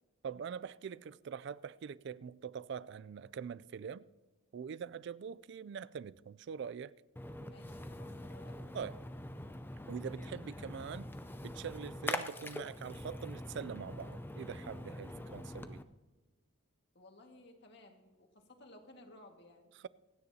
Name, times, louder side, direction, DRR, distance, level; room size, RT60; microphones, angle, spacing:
voice 1, 0.2-4.1 4.5-6.9 8.7-9.0 9.9-11.1 11.4-15.8, right 7 dB, 55° right, 0.3 m, -43 dB
Splash splatter, 7.2-15.8, left 1 dB, 10° left, 0.5 m, -44 dB
voice 2, 7.4-8.7 17.0-19.7, left 2 dB, 55° left, 1.8 m, -58 dB
26.0 x 9.5 x 2.8 m
head